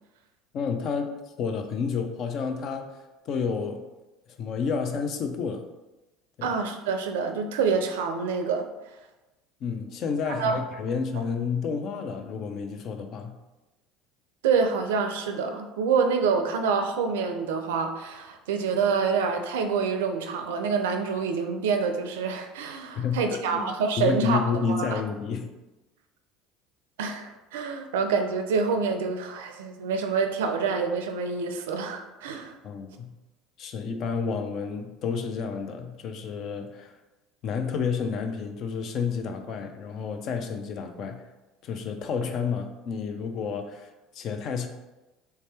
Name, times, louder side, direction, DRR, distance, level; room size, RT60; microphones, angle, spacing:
voice 1, 0.5-3.9 4.3-5.6 6.4-6.6 9.6-13.4 22.9-23.7 24.0-25.6 32.6-33.1 33.6-37.0 37.4-41.2 41.6-44.7, left 5 dB, 55° left, 6 dB, 0.4 m, -30 dB
voice 2, 6.4-8.7 10.4-10.6 14.4-24.4 24.7-25.0 27.0-32.6, right 5 dB, 80° right, 6 dB, 0.4 m, -27 dB
3.3 x 2.8 x 3.3 m, 1.1 s
hypercardioid pair, 75°, 0 cm